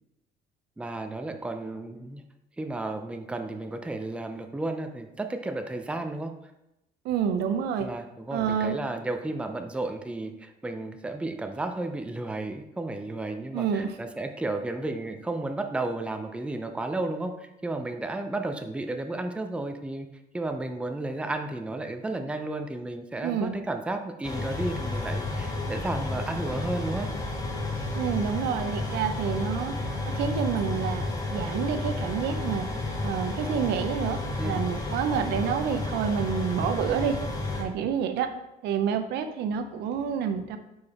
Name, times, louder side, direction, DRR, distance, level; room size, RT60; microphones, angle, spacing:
voice 1, 0.8-2.2 2.6-6.3 7.8-20.1 20.3-27.1 34.4-34.6, right 2 dB, 5° right, 6 dB, 0.5 m, -33 dB
voice 2, 7.0-7.9 8.3-8.8 13.5-13.9 23.2-23.6 27.9-29.7 30.1-31.0 31.3-32.7 33.0-37.2 37.6-38.3 38.6-40.6, right 7 dB, 80° right, 8 dB, 0.6 m, -28 dB
sound 1, 24.2-37.6, left 2 dB, 20° left, 1.1 m, -31 dB
4.8 x 4.7 x 4.1 m, 0.91 s
cardioid pair, 110°, 17 cm